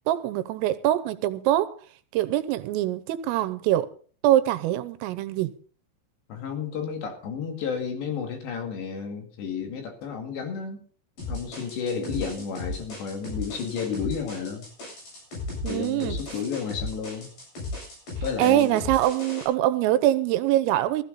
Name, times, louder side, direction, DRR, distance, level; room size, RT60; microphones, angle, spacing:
voice 1, 0.1-1.8 2.1-3.9 4.2-5.5 12.0-12.2 15.6-16.2 18.4-21.0, right 13 dB, 80° right, 3.4 m, -24 dB
voice 2, 6.3-10.8 11.3-14.7 15.7-17.3 18.2-18.8, left 6 dB, 60° left, 4.2 m, -32 dB
sound 1, 11.2-19.4, left 2 dB, 45° left, 9.6 m, -36 dB
15.5 x 14.0 x 4.1 m
omnidirectional pair, 6.0 m